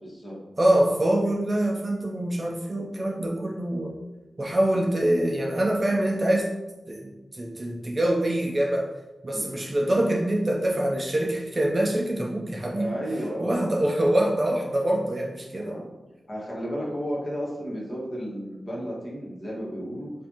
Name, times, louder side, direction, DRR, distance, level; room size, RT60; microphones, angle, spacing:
voice 1, 0.0-0.4 9.3-9.5 12.7-13.7 15.6-15.9 16.3-20.1, equal, 25° left, -5 dB, 1.4 m, -33 dB
voice 2, 0.6-4.0 4.4-6.5 6.9-8.9 9.2-12.9 13.4-15.8, right 1 dB, 30° right, -1 dB, 0.5 m, -25 dB
6.9 x 2.6 x 2.8 m, 1.1 s
wide cardioid pair, 110°, 0 cm